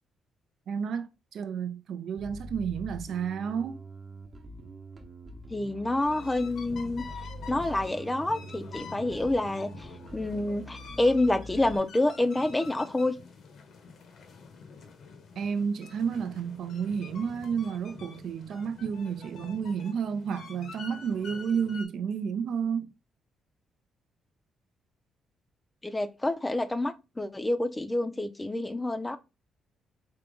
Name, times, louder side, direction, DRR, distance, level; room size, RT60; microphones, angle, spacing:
voice 1, 0.7-3.8 15.4-22.9, right 7 dB, 65° right, 0.5 m, -31 dB
Bass guitar, 2.2-11.8, right 1 dB, 35° right, 0.8 m, -44 dB
voice 2, 5.5-7.0 7.5-9.9 10.1-13.2 25.8-29.2, left 2 dB, 15° left, 0.5 m, -28 dB
sound 1, 6.0-21.8, left 5 dB, 65° left, 0.9 m, -47 dB
3.6 x 2.8 x 3.8 m
cardioid pair, 90°, 0 cm